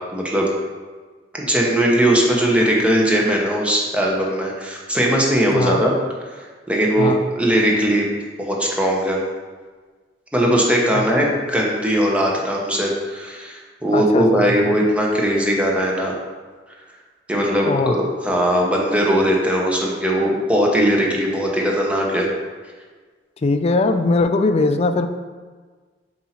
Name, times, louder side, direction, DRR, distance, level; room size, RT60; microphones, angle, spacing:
voice 1, 0.1-0.5 1.3-5.9 6.7-8.1 8.4-9.2 10.3-16.1 17.3-22.3, equal, 5° right, -2 dB, 0.9 m, -19 dB
voice 2, 5.5-5.8 7.0-7.2 10.9-11.3 13.9-14.7 17.6-18.0 23.4-25.1, left 3 dB, 35° left, 7 dB, 0.4 m, -20 dB
7.9 x 2.8 x 4.3 m, 1.4 s
head